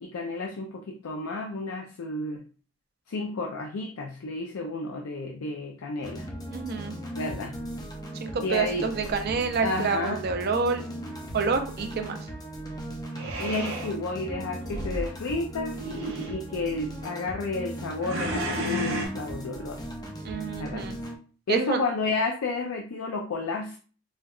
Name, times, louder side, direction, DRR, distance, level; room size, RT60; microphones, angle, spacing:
voice 1, 0.0-2.4 3.1-6.3 7.2-7.6 8.3-8.9 9.6-10.2 13.4-15.8 16.3-19.8 20.6-20.9 21.5-23.8, left 3 dB, 85° left, 2 dB, 0.4 m, -31 dB
sound 1, 6.0-21.2, right 1 dB, 20° left, 0.5 m, -38 dB
voice 2, 6.5-7.0 8.2-10.8 11.3-12.2 20.2-21.0 21.5-21.8, right 4 dB, 50° right, 6 dB, 0.4 m, -28 dB
sound 2, 8.9-9.8 13.1-13.9 14.6-15.1 15.7-16.4 18.0-19.1, equal, 70° right, 0.8 m, -32 dB
4.4 x 2.2 x 2.3 m, 0.39 s
head